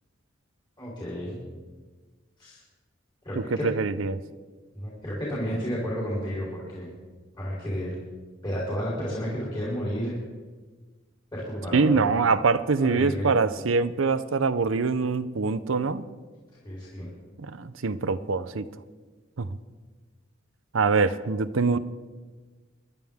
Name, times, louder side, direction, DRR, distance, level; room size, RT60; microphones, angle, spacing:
voice 1, 0.8-1.4 2.4-2.6 3.2-3.7 4.7-6.9 7.4-7.9 8.4-10.2 11.3-12.1 12.8-13.3 16.6-17.1, equal, 25° left, -7 dB, 4.0 m, -31 dB
voice 2, 3.6-4.2 11.7-16.0 17.4-18.6 19.4-19.5 20.7-21.8, right 4 dB, 85° right, 13 dB, 0.7 m, -24 dB
25.0 x 11.5 x 3.6 m, 1.3 s
head